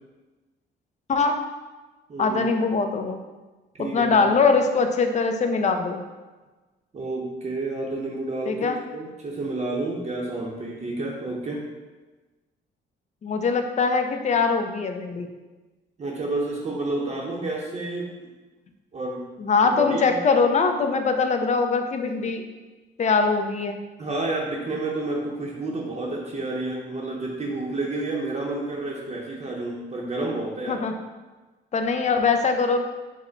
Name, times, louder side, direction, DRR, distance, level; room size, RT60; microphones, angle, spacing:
voice 1, 1.1-1.4 2.2-3.2 3.8-6.0 8.5-8.8 13.2-15.3 19.4-22.4 23.0-23.8 30.7-30.9 31.7-32.8, left 4 dB, 35° left, 6 dB, 0.5 m, -22 dB
voice 2, 2.1-2.4 3.7-4.2 6.9-11.6 16.0-18.1 18.9-19.3 19.6-20.2 24.0-30.9, right 2 dB, 35° right, -3 dB, 0.7 m, -30 dB
4.7 x 2.1 x 4.5 m, 1.2 s
cardioid pair, 90°, 20 cm